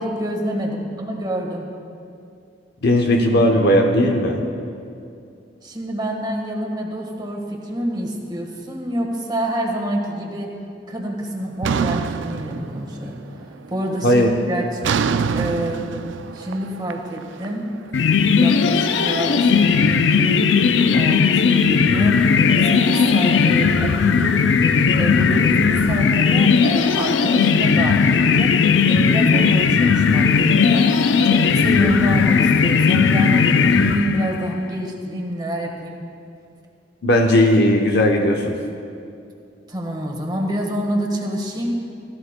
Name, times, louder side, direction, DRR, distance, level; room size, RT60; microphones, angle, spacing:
voice 1, 0.0-1.7 5.6-10.5 10.9-14.8 15.3-15.9 16.3-17.7 18.3-20.5 20.9-22.2 22.6-24.4 25.0-28.5 28.9-30.9 31.2-36.0 39.7-41.7, equal, 25° right, 1 dB, 1.5 m, -27 dB
voice 2, 2.8-4.4 14.0-14.3 37.0-38.5, left 1 dB, 65° left, 2 dB, 0.8 m, -16 dB
sound 1, 11.6-13.2 13.5-13.9 14.8-17.9, right 6 dB, 90° right, 0.4 m, -25 dB
sound 2, 17.9-34.5, left 5 dB, 90° left, 0.5 m, -17 dB
16.0 x 15.5 x 2.2 m, 2.4 s
head